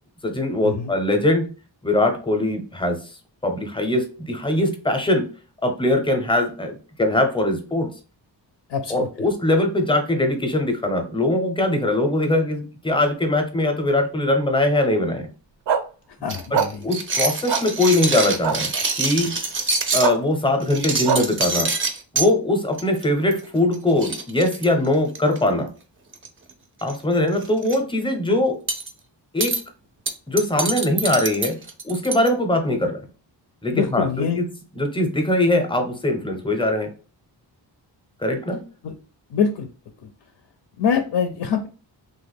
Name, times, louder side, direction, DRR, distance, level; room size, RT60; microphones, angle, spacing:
voice 1, 0.2-1.5 1.8-3.0 3.4-5.3 5.6-7.9 8.9-15.3 16.5-18.7 19.0-19.3 19.9-21.7 22.1-25.7 26.8-28.6 29.3-29.6 30.3-31.6 31.8-33.1 33.6-34.5 34.8-36.9 38.2-38.6, left 1 dB, 10° left, 5 dB, 0.6 m, -21 dB
voice 2, 8.7-9.1 16.2-16.8 33.7-34.4 38.8-38.9 39.3-39.7 40.0-40.1 40.8-41.7, left 6 dB, 75° left, 6 dB, 0.5 m, -24 dB
sound 1, 15.7-15.8 16.5-16.7 17.5-17.6 18.4-18.6 20.0-20.1 21.0-21.2, right 7 dB, 75° right, 0.6 m, -21 dB
sound 2, 16.3-20.1 20.6-22.3 22.8-23.0 23.3-23.4 23.7-23.8 24.0-25.4 26.1-26.5 26.8-27.0 27.3-27.8 28.7-28.9 29.4-29.6 30.1-32.3, right 3 dB, 30° right, 0.4 m, -25 dB
2.9 x 2.2 x 3.4 m, 0.35 s
wide cardioid pair, 125°, 43 cm